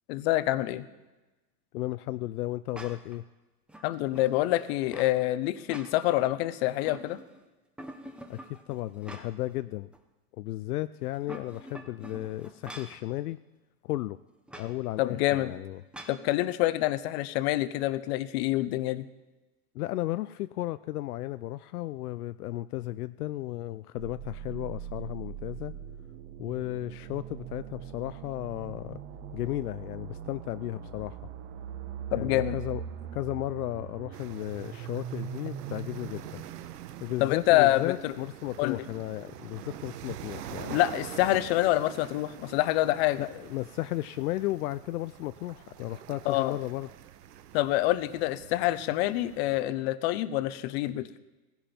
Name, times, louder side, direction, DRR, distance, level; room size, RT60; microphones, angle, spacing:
voice 1, 0.1-0.9 3.8-7.2 15.0-15.5 16.1-19.1 32.1-32.6 37.2-38.1 38.6-38.8 40.7-43.2 46.3-46.6 47.5-51.2, left 16 dB, 40° left, 15 dB, 0.8 m, -26 dB
voice 2, 1.7-3.2 8.3-8.4 8.7-9.9 10.4-13.4 13.8-14.2 14.6-15.8 19.7-25.7 26.4-29.0 29.3-31.2 32.1-32.8 33.1-36.4 37.0-40.8 43.2-46.9, left 16 dB, 70° left, 13 dB, 0.6 m, -34 dB
sound 1, 2.7-3.2 3.7-5.2 5.5-6.3 6.6-7.4 7.8-9.5 9.9-10.0 11.0-13.0 14.5-14.7 15.9-16.2, right 1 dB, ahead, 0.7 m, -46 dB
sound 2, 24.0-37.7, right 9 dB, 35° right, 1.2 m, -41 dB
sound 3, 34.1-49.6, right 11 dB, 75° right, 1.2 m, -46 dB
17.0 x 16.0 x 4.4 m, 1.1 s
hypercardioid pair, 140°, 48 cm